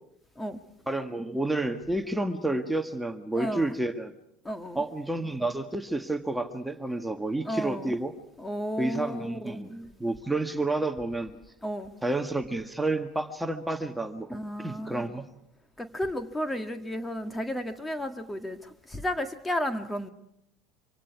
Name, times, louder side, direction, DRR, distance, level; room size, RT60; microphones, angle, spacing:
voice 1, 0.9-4.1 4.7-8.1 8.8-11.3 12.0-15.3, right 2 dB, 5° right, 1.7 m, -30 dB
voice 2, 3.4-3.8 4.5-4.8 7.4-7.9 8.4-9.6 11.6-11.9 14.3-15.1 15.8-20.1, equal, 10° left, 1.8 m, -33 dB
25.5 x 25.5 x 4.8 m
hypercardioid pair, 75°, 0 cm